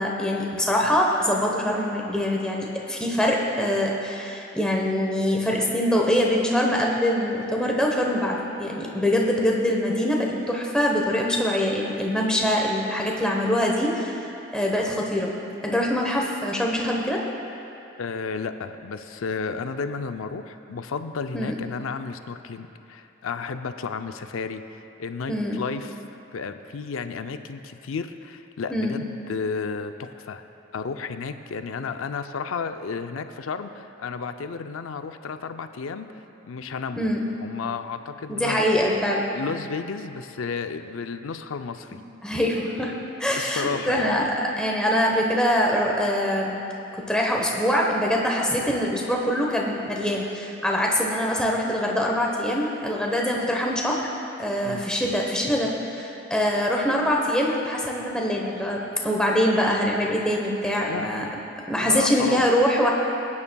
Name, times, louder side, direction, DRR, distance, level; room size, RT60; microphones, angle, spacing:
voice 1, 0.0-15.3 15.6-17.2 21.3-21.6 25.3-25.5 28.7-29.0 36.9-37.2 38.3-39.3 42.2-42.9 43.2-46.6 46.9-54.0 54.4-61.2 61.7-62.9, equal, 5° left, -2 dB, 1.0 m, -24 dB
voice 2, 18.0-26.0 26.3-30.4 30.7-36.1 36.4-37.1 37.4-38.7 39.3-42.0 43.4-44.1 54.6-54.8 60.9-61.3 61.8-62.5, left 5 dB, 90° left, 9 dB, 0.5 m, -32 dB
19.5 x 9.6 x 2.3 m, 3.0 s
head